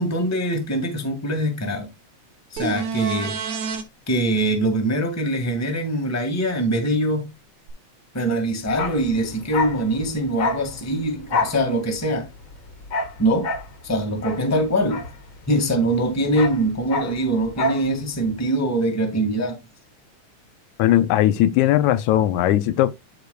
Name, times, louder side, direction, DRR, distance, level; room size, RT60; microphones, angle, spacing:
voice 1, 0.0-1.9 2.5-3.4 4.1-7.3 8.1-12.3 13.2-13.5 13.8-15.0 15.5-19.6, right 1 dB, 5° left, 1.3 m, -23 dB
sound 1, 2.6-3.8 7.7-7.8, right 6 dB, 70° right, 2.6 m, -28 dB
Bark, 8.7-15.7 16.0-17.9 18.1-18.3, left 3 dB, 45° left, 2.1 m, -28 dB
voice 2, 20.8-22.9, left 13 dB, 85° left, 2.0 m, -18 dB
13.5 x 4.9 x 2.3 m
omnidirectional pair, 3.4 m